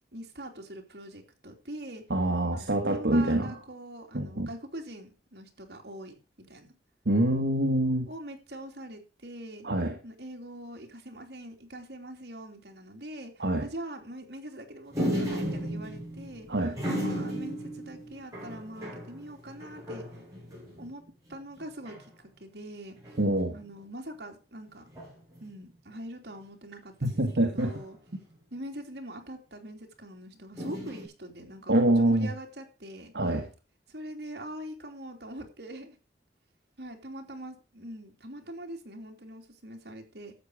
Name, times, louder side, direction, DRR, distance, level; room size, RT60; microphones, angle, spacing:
voice 1, 0.1-2.0 2.5-6.7 8.1-9.7 10.0-20.3 20.8-21.0 21.3-23.0 23.5-24.8 25.4-28.0 28.5-33.1 33.9-36.0 36.8-40.3, right 1 dB, 70° right, 3.1 m, -43 dB
voice 2, 2.1-3.5 4.1-4.5 7.1-8.1 9.6-10.0 13.4-13.7 16.5-16.8 23.2-23.5 27.0-27.7 31.7-32.3 33.1-33.5, right 1 dB, 85° right, 1.6 m, -25 dB
sound 1, 14.9-20.9 21.3-21.4 21.6-22.1 23.0-23.5 24.9-25.4 27.0-28.3 30.6-31.0, equal, 20° right, 7.8 m, -35 dB
12.5 x 8.3 x 4.9 m
head